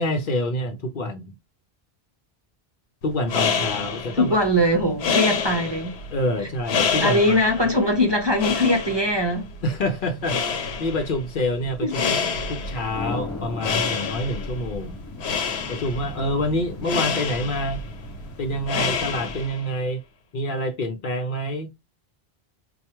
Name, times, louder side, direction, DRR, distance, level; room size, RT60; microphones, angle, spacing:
voice 1, 0.0-1.3 3.0-4.3 4.8-5.0 6.1-7.7 9.6-12.2 12.5-15.0 15.7-17.8 18.4-20.0 20.3-21.8, left 1 dB, 60° left, 0.8 m, -27 dB
sound 1, 3.1-19.7, left 5 dB, 85° left, 0.9 m, -28 dB
voice 2, 4.2-5.9 7.0-9.5 11.8-11.9, left 1 dB, 30° right, 0.6 m, -21 dB
sound 2, 12.6-19.5, left 3 dB, 25° left, 0.4 m, -39 dB
4.5 x 2.3 x 2.9 m
omnidirectional pair, 1.0 m